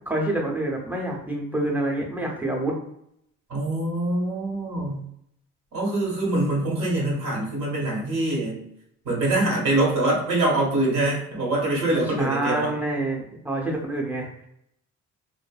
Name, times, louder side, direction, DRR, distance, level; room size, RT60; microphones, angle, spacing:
voice 1, 0.1-2.7 12.2-14.5, right 1 dB, 5° right, -1 dB, 0.8 m, -27 dB
voice 2, 3.5-5.0 5.7-8.6 9.0-12.7, right 2 dB, 70° right, -3 dB, 1.5 m, -24 dB
2.5 x 2.5 x 2.4 m, 0.73 s
cardioid pair, 90°, 30 cm